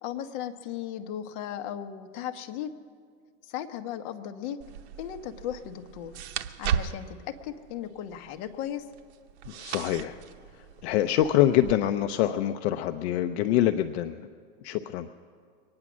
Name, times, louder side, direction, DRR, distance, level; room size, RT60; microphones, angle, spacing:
voice 1, 0.0-2.7 3.5-4.6 5.0-6.1 6.6-8.8, left 10 dB, 55° left, 6 dB, 1.1 m, -36 dB
sound 1, 4.6-11.7, right 8 dB, 85° right, 0.8 m, -37 dB
voice 2, 9.5-10.2 10.8-14.3 14.6-15.1, left 12 dB, 80° left, 8 dB, 0.7 m, -25 dB
23.0 x 9.7 x 6.2 m, 2.1 s
supercardioid pair, 145°, 33 cm